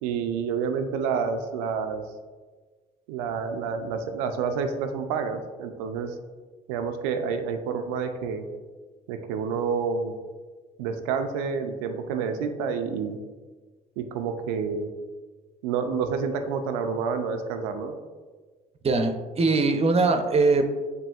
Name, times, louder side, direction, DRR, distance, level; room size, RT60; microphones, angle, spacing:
voice 1, 0.0-2.0 3.1-6.1 6.7-8.4 9.1-10.1 10.8-13.2 14.0-14.9 15.6-17.9, right 6 dB, 90° right, 6 dB, 0.4 m, -29 dB
voice 2, 18.8-20.7, right 3 dB, 35° right, 6 dB, 0.6 m, -21 dB
7.5 x 2.7 x 2.4 m, 1.4 s
supercardioid pair, 65°, 18 cm